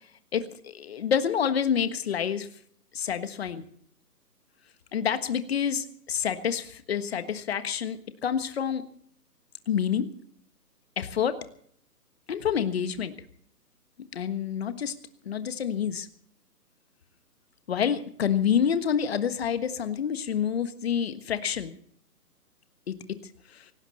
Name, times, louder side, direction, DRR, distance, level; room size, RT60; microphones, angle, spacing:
voice 1, 0.3-2.5 2.9-3.6 4.9-8.8 9.7-10.1 11.0-11.3 12.3-13.1 14.1-14.9 15.2-16.1 17.7-21.7 22.9-23.0, left 8 dB, 40° left, 10 dB, 1.5 m, -28 dB
18.5 x 17.5 x 4.2 m, 0.64 s
hypercardioid pair, 160°, 48 cm